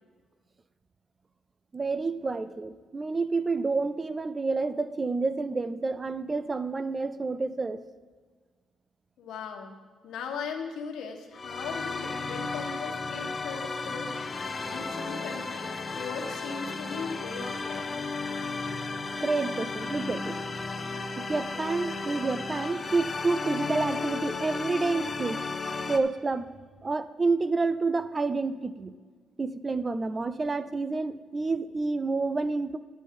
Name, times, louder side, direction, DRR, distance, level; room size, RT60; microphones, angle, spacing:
voice 1, 1.7-7.8 19.2-20.4 21.2-25.5 25.9-26.5 26.8-28.9 29.4-32.8, right 3 dB, 30° right, 13 dB, 0.5 m, -29 dB
voice 2, 9.2-9.8 10.0-14.2 14.7-17.9, left 5 dB, 80° left, 4 dB, 1.3 m, -38 dB
sound 1, 11.3-26.0, left 4 dB, 30° left, 0.8 m, -34 dB
11.5 x 9.8 x 3.7 m, 1.5 s
cardioid pair, 90°, 0 cm